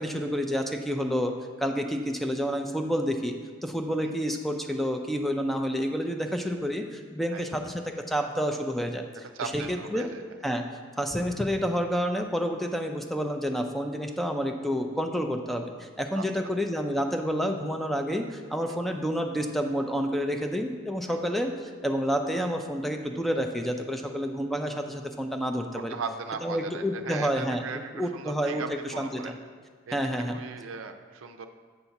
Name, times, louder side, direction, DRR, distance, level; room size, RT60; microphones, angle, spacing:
voice 1, 0.0-3.4 3.6-9.0 9.4-10.1 10.4-10.6 11.0-26.0 26.4-27.6 27.9-29.3 29.9-30.4, equal, ahead, 4 dB, 0.3 m, -29 dB
voice 2, 9.3-10.2 16.1-16.2 18.7-18.8 21.1-21.2 25.8-29.3 29.9-30.0 30.3-31.5, right 5 dB, 90° right, 7 dB, 0.4 m, -38 dB
7.9 x 2.7 x 5.7 m, 1.5 s
head